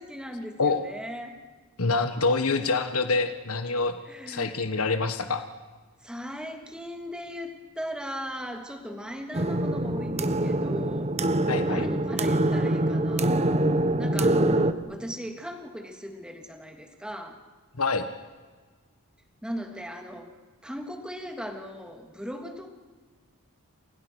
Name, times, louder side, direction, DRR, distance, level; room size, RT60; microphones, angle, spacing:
voice 1, 0.0-1.4 4.1-4.6 6.0-11.1 11.6-13.6 14.0-14.6 14.9-17.4 19.4-20.3 20.6-22.7, equal, 5° right, 4 dB, 3.0 m, -38 dB
voice 2, 0.6-0.9 1.8-3.9 4.3-5.4 11.5-11.9 17.8-18.0, left 3 dB, 70° left, 8 dB, 1.5 m, -26 dB
sound 1, 9.3-14.7, right 1 dB, 30° right, 1.2 m, -24 dB
29.0 x 28.5 x 6.4 m, 1.4 s
head